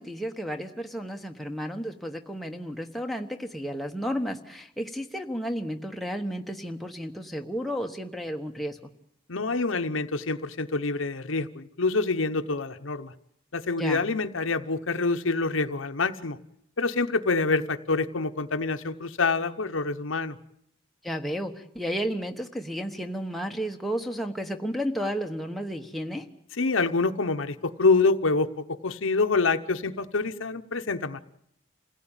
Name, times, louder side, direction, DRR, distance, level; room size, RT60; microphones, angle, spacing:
voice 1, 0.0-8.8 13.8-14.0 21.0-26.2, equal, ahead, 3 dB, 1.2 m, -32 dB
voice 2, 9.3-13.1 13.5-16.4 16.8-20.4 26.6-31.2, left 3 dB, 85° left, 8 dB, 1.1 m, -26 dB
27.0 x 16.5 x 9.0 m, 0.75 s
head